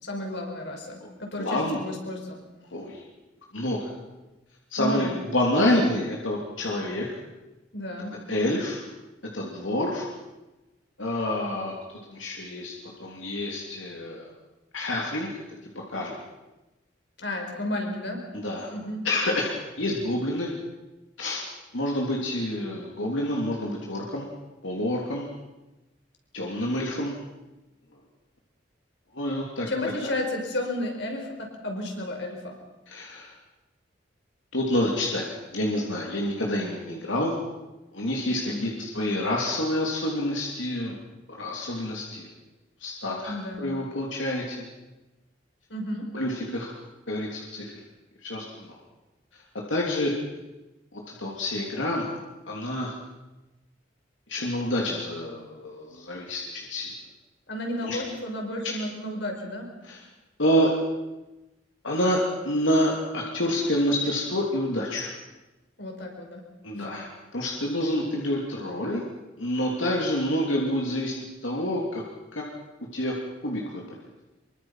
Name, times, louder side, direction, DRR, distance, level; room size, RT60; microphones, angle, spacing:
voice 1, 0.0-2.4 4.8-5.1 5.6-5.7 7.7-8.2 17.2-18.3 18.7-19.1 29.6-32.5 38.4-38.8 43.3-43.7 45.7-46.1 57.5-59.8 65.8-66.4 66.7-67.0, left 1 dB, 65° left, 2 dB, 5.5 m, -32 dB
voice 2, 1.4-1.8 2.7-3.0 3.5-3.9 4.7-7.2 8.3-8.8 9.3-10.1 11.0-11.7 12.0-12.7 13.0-14.3 14.7-15.4 15.9-16.2 18.3-18.7 19.0-20.5 21.2-21.4 21.7-24.3 24.6-25.3 26.3-27.1 29.1-29.7 32.9-33.3 34.5-37.3 37.9-41.0 41.3-42.3 42.8-44.7 46.1-46.7 47.1-47.7 48.2-48.8 49.3-49.4 49.7-50.1 50.9-52.1 52.5-52.9 54.3-56.9 57.8-58.0 58.6-58.7 59.8-60.0 60.4-60.7 61.8-65.1 66.6-69.0 69.4-72.0 72.3-72.4 72.9-73.1 73.4-74.0, left 1 dB, 90° left, -2 dB, 3.3 m, -28 dB
25.0 x 23.5 x 5.9 m, 1.1 s
head